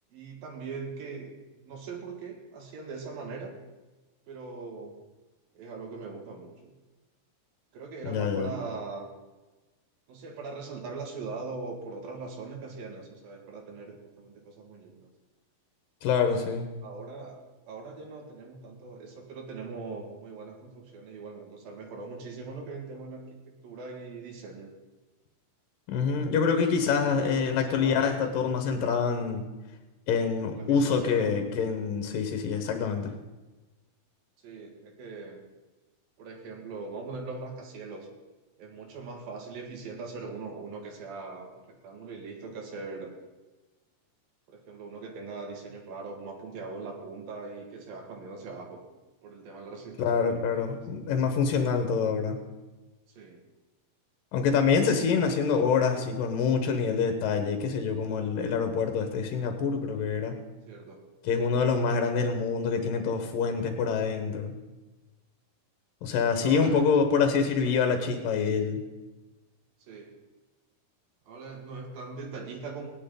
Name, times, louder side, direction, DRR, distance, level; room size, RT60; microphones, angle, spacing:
voice 1, 0.1-3.5 4.3-5.0 5.6-6.7 7.7-9.1 10.1-15.1 16.8-24.7 26.8-28.2 30.6-31.4 34.4-35.4 36.2-38.1 38.6-43.1 44.5-48.8 49.2-50.8 53.1-53.4 54.8-55.3 60.7-61.0 61.3-61.5 66.1-67.0 67.6-68.6 69.9-70.2 71.3-72.9, right 4 dB, 75° right, 1 dB, 3.7 m, -41 dB
voice 2, 8.0-8.5 16.0-16.7 25.9-29.4 30.1-33.1 50.0-52.4 54.3-60.3 61.2-64.5 66.0-68.8, left 5 dB, 70° left, 5 dB, 2.7 m, -26 dB
17.5 x 11.0 x 3.9 m, 1.1 s
omnidirectional pair, 4.2 m